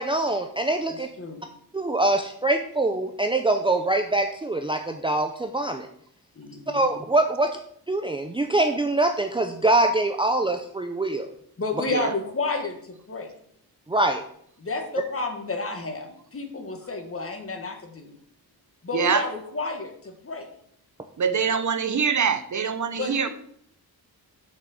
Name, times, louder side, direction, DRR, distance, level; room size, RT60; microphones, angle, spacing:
voice 1, 0.0-1.1 1.7-5.9 6.7-7.6 7.9-11.3 13.9-14.2, right 2 dB, 15° right, 5 dB, 0.6 m, -24 dB
voice 2, 0.9-1.4 6.3-6.8 11.6-13.3 14.6-18.1 18.8-20.5 22.9-23.3, left 3 dB, 35° left, 4 dB, 1.7 m, -31 dB
voice 3, 18.9-19.3 21.2-23.3, right 6 dB, 50° right, 10 dB, 0.7 m, -24 dB
6.4 x 6.2 x 7.2 m, 0.67 s
wide cardioid pair, 110°, 38 cm